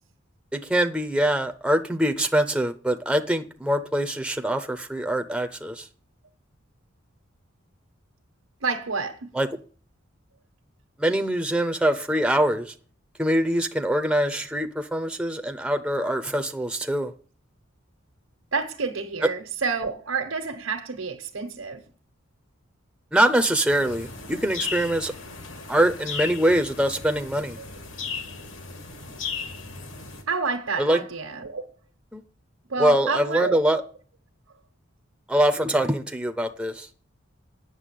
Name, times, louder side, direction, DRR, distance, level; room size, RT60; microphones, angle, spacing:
voice 1, 0.5-5.8 9.4-9.5 11.0-12.7 13.2-17.1 23.1-25.1 25.7-27.6 30.8-31.0 32.1-32.2 32.8-33.8 35.3-36.9, right 1 dB, 5° right, 0.6 m, -23 dB
voice 2, 8.6-9.3 18.5-21.8 27.6-27.7 30.3-31.7 32.7-33.6, right 4 dB, 80° right, 1.3 m, -29 dB
sound 1, 23.7-30.2, left 5 dB, 75° left, 2.2 m, -36 dB
9.1 x 6.8 x 8.4 m
head